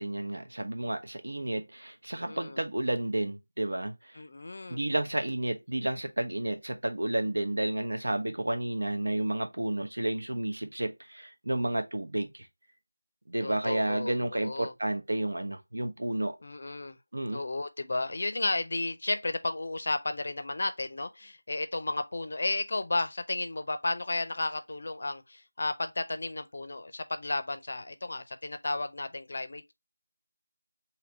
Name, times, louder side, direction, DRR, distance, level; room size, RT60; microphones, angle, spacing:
voice 1, 0.0-4.2 4.7-12.5 13.3-16.4 17.1-17.4, right 1 dB, 75° right, 1.0 m, -31 dB
voice 2, 2.3-2.6 4.1-4.8 13.4-14.7 16.4-17.0 17.3-29.7, left 2 dB, 45° left, 0.5 m, -33 dB
3.4 x 2.9 x 3.8 m
figure-of-eight pair, 175°, 0 cm